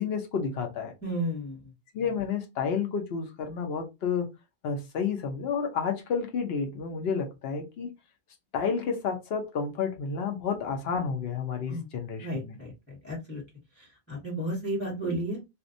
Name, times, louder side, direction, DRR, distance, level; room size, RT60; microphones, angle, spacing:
voice 1, 0.0-0.9 1.9-4.3 4.6-7.9 8.5-12.6, left 6 dB, 65° left, 0.9 m, -30 dB
voice 2, 1.0-1.6 11.7-11.9 12.2-13.4 14.1-15.4, right 1 dB, 15° left, 1.1 m, -32 dB
2.6 x 2.1 x 2.5 m
omnidirectional pair, 1.1 m